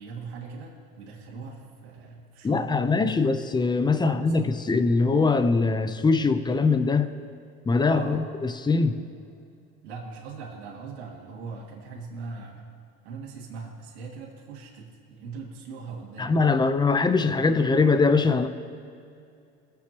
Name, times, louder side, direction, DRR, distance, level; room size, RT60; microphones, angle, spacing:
voice 1, 0.0-3.4 3.9-4.6 7.9-8.2 9.8-12.7 13.0-16.8 17.2-17.4, right 4 dB, 85° right, -3 dB, 2.4 m, -40 dB
voice 2, 2.4-7.1 7.6-9.0 16.2-18.5, left 4 dB, 15° left, 10 dB, 0.6 m, -22 dB
22.5 x 8.0 x 3.0 m, 2.4 s
supercardioid pair, 95°, 32 cm